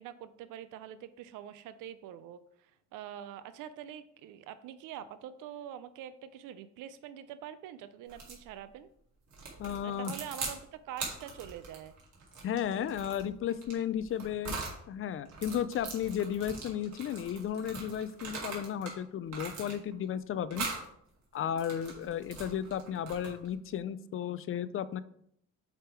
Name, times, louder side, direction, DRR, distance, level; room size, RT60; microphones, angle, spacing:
voice 1, 0.0-8.9 9.8-11.9, right 10 dB, 80° right, 13 dB, 0.5 m, -45 dB
sound 1, 8.1-8.4 9.3-10.6 10.9-14.8 15.3-19.0 19.3-20.0 20.5-20.9 21.4-23.5, right 4 dB, 65° right, 2.3 m, -41 dB
voice 2, 9.6-10.1 12.4-14.6 14.9-20.7 21.3-25.0, left 9 dB, 45° left, 16 dB, 0.4 m, -34 dB
8.1 x 3.4 x 4.5 m, 0.71 s
cardioid pair, 125°, 31 cm